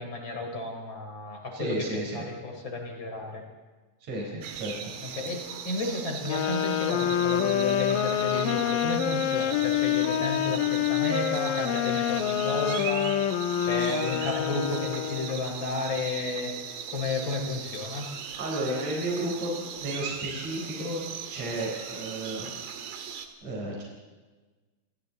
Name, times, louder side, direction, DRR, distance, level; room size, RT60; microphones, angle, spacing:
voice 1, 0.0-3.4 5.0-13.2 13.6-16.5 16.9-18.1, left 2 dB, 35° left, 2 dB, 4.5 m, -32 dB
voice 2, 1.5-2.3 4.0-4.9 18.4-22.5 23.4-23.8, right 1 dB, 50° right, -2 dB, 5.6 m, -33 dB
sound 1, 4.4-23.3, right 7 dB, 80° right, 3.3 m, -39 dB
sound 2, 6.3-15.5, left 10 dB, 80° left, 2.7 m, -27 dB
28.0 x 26.0 x 4.1 m, 1.3 s
omnidirectional pair, 4.0 m